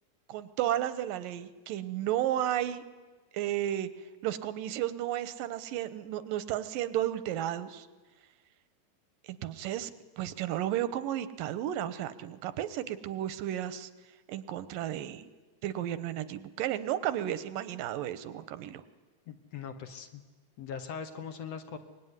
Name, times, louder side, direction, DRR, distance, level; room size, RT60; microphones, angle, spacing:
voice 1, 0.3-2.8 3.3-3.9 4.2-7.9 9.2-13.9 14.3-15.3 15.6-18.8, right 12 dB, 85° right, 13 dB, 2.7 m, -33 dB
voice 2, 19.3-20.2 20.6-21.8, left 7 dB, 60° left, 8 dB, 2.1 m, -41 dB
24.5 x 21.5 x 9.6 m, 1.3 s
omnidirectional pair, 3.9 m